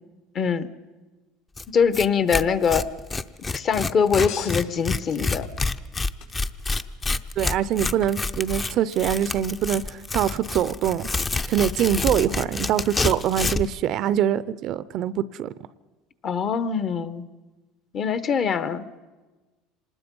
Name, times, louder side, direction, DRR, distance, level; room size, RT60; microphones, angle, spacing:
voice 1, 0.3-0.7 1.7-2.9 3.5-5.5 16.2-17.2 17.9-18.8, left 6 dB, 35° left, 0.9 m, -23 dB
Tearing, 1.6-1.7 1.9-2.1 2.3-13.7, left 3 dB, 20° left, 0.6 m, -28 dB
sound 1, 4.2-5.8 6.2-6.8 8.4-8.5, left 7 dB, 80° left, 4.9 m, -37 dB
voice 2, 7.4-11.1 11.5-15.5, right 10 dB, 50° right, 0.6 m, -24 dB
25.5 x 20.0 x 5.4 m
supercardioid pair, 125°, 0 cm